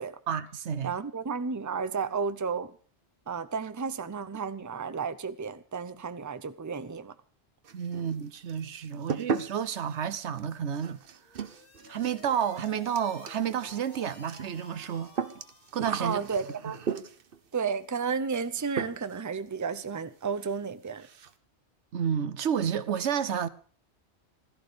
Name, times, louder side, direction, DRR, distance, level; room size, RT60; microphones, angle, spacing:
voice 1, 0.3-0.9 7.7-11.0 11.9-15.1 15.7-16.2 21.9-23.5, right 8 dB, 80° right, 1.1 m, -30 dB
voice 2, 0.8-2.7 3.3-7.1 7.9-8.1 8.9-9.0 16.0-16.8 17.5-21.1, right 5 dB, 20° right, 0.6 m, -32 dB
sound 1, 7.6-8.2 8.5-17.4 18.3-18.5 18.8-19.2 19.5-19.6 20.0-20.1 20.4-20.5 20.9-21.3, right 6 dB, 55° right, 1.1 m, -37 dB
sound 2, 11.2-16.0, left 3 dB, 50° left, 2.1 m, -52 dB
16.0 x 13.5 x 5.1 m
omnidirectional pair, 1.2 m